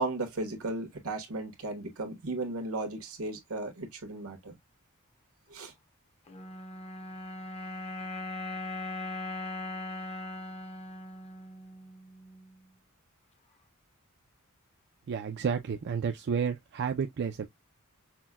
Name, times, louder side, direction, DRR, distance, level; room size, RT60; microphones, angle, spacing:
voice 1, 0.0-4.6 5.5-5.7, right 2 dB, 80° right, 1.2 m, -35 dB
sound 1, 6.3-12.7, left 2 dB, 30° left, 0.6 m, -40 dB
voice 2, 15.1-17.5, right 6 dB, 55° right, 0.4 m, -31 dB
5.8 x 2.1 x 2.2 m
head